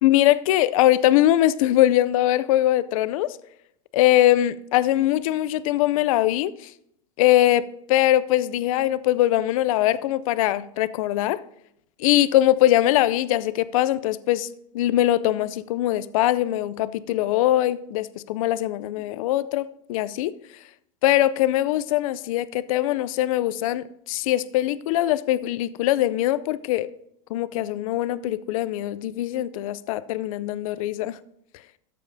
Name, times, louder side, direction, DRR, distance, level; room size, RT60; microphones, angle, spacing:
voice 1, 0.0-3.4 3.9-6.7 7.2-11.4 12.0-14.5 14.7-20.3 21.0-26.9 27.3-31.2, left 14 dB, 75° left, 0.5 m, -22 dB
13.5 x 7.5 x 2.7 m
supercardioid pair, 140°, 18 cm